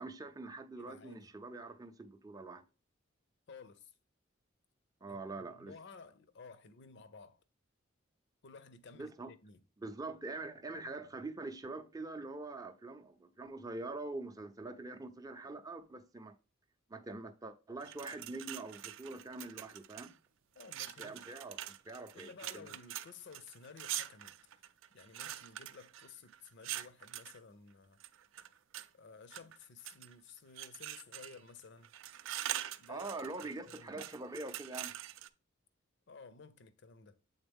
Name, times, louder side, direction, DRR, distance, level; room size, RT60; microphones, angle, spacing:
voice 1, 0.0-2.6 5.0-5.8 9.0-9.3 9.8-16.3 16.9-20.1 21.0-22.7 32.9-34.9, right 2 dB, 20° right, 0.5 m, -44 dB
voice 2, 0.8-1.3 3.5-3.9 5.1-7.4 8.4-9.6 20.5-21.2 22.1-24.3 24.9-28.0 28.9-31.9 32.8-33.1 33.4-34.0 36.1-37.2, left 4 dB, 60° left, 0.6 m, -54 dB
sound 1, 17.8-20.1 20.6-27.4 28.0-28.9 29.3-30.1 30.6-31.5 31.8-35.3, right 12 dB, 70° right, 0.4 m, -44 dB
7.9 x 3.9 x 3.5 m
head